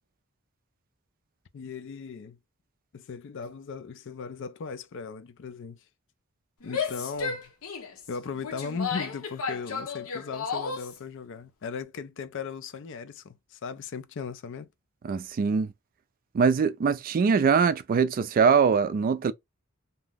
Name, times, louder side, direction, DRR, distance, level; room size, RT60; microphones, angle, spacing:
voice 1, 1.5-2.4 2.9-5.8 6.6-7.5 8.1-14.7, left 5 dB, 60° left, 0.4 m, -37 dB
Female speech woman speaking / Yell, 6.6-11.0, left 5 dB, 85° left, 0.8 m, -33 dB
voice 2, 15.0-15.7 16.3-19.3, right 6 dB, 45° right, 0.3 m, -22 dB
2.7 x 2.0 x 3.4 m
head